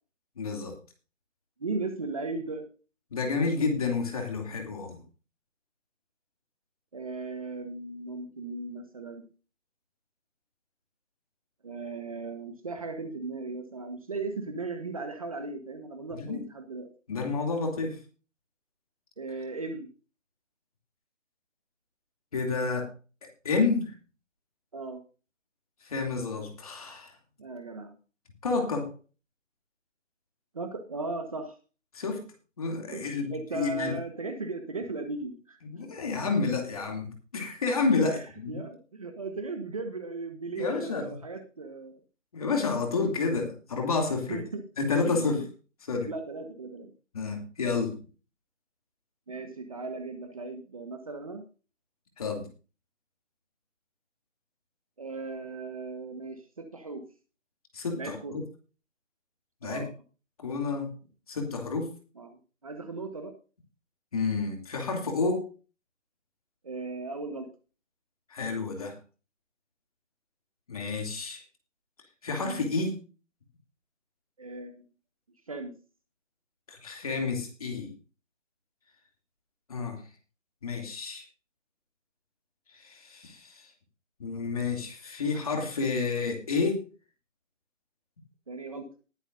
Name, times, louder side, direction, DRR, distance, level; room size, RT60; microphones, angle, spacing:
voice 1, 0.4-0.7 3.1-5.0 16.1-16.4 17.1-18.0 22.3-22.9 23.4-23.9 25.8-27.1 28.4-28.9 31.9-32.3 32.6-33.9 35.6-38.6 40.6-41.2 42.3-44.4 44.8-45.4 45.9-46.1 47.1-48.0 52.2-52.5 57.7-58.4 59.6-59.8 60.4-60.9 61.3-61.9 64.1-65.5 68.3-69.0 70.7-71.4 72.2-72.9 76.7-77.9 79.7-80.0 80.6-81.3 82.7-83.7 84.2-86.8, left 4 dB, 30° left, 3 dB, 2.8 m, -30 dB
voice 2, 1.6-2.7 6.9-9.2 11.6-16.9 19.2-19.9 24.7-25.0 27.4-27.9 30.5-31.6 32.9-35.6 38.0-38.2 38.5-41.9 44.3-44.6 45.0-45.5 46.0-46.9 49.3-51.4 55.0-57.0 58.0-58.4 59.6-59.9 62.2-63.3 66.6-67.5 72.4-72.7 74.4-74.9 75.5-75.7 88.5-88.9, right 3 dB, 30° right, 6 dB, 1.4 m, -37 dB
20.0 x 8.3 x 2.7 m, 0.34 s
hypercardioid pair, 175°, 38 cm